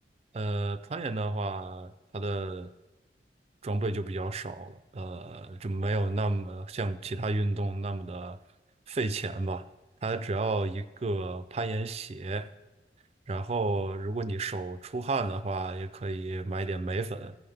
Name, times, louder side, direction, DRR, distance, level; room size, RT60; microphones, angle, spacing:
voice 1, 0.3-2.7 3.6-8.4 8.9-9.7 10.0-12.5 13.3-17.4, right 2 dB, 35° right, 12 dB, 0.4 m, -32 dB
15.5 x 5.7 x 3.4 m, 1.2 s
head